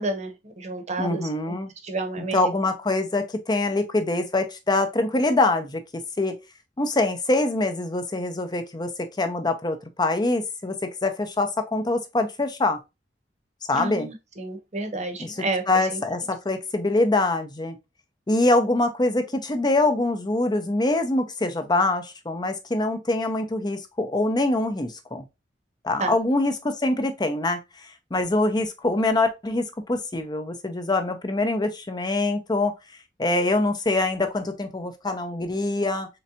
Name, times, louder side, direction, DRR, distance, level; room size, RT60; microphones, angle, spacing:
voice 1, 0.0-1.5 1.8-2.5 13.7-15.6 15.9-16.0 26.0-26.1, right 2 dB, 40° right, 0.9 m, -30 dB
voice 2, 1.0-1.7 2.3-5.8 6.2-6.3 6.8-8.9 9.2-12.8 13.7-14.1 15.2-17.8 18.3-25.2 25.8-27.6 28.1-32.7 33.2-36.1, left 2 dB, 25° left, 0.6 m, -24 dB
3.9 x 3.3 x 2.8 m
head